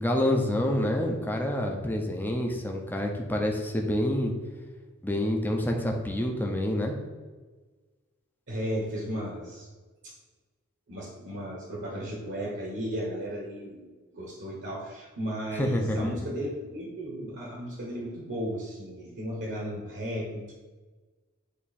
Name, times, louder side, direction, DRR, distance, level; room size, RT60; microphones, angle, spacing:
voice 1, 0.0-4.3 5.0-6.9 15.6-16.1, left 1 dB, 10° left, 1 dB, 0.6 m, -27 dB
voice 2, 8.5-9.7 10.0-10.2 10.9-13.9 14.1-20.5, equal, 55° right, -2 dB, 1.2 m, -35 dB
8.4 x 2.9 x 4.2 m, 1.3 s
head